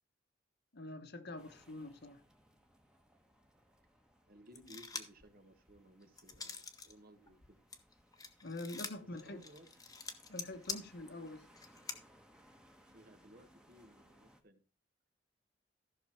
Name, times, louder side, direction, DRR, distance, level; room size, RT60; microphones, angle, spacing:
voice 1, 0.7-2.2 8.4-9.4 10.3-11.5, left 2 dB, 60° left, 1.2 m, -45 dB
sound 1, 1.4-14.4, equal, 5° right, 1.2 m, -66 dB
voice 2, 4.3-7.6 9.0-9.7 12.8-14.6, equal, 55° right, 1.4 m, -59 dB
sound 2, 4.6-5.2 5.7-6.9 7.3-12.0, left 4 dB, 20° left, 1.0 m, -45 dB
14.0 x 6.1 x 4.5 m
head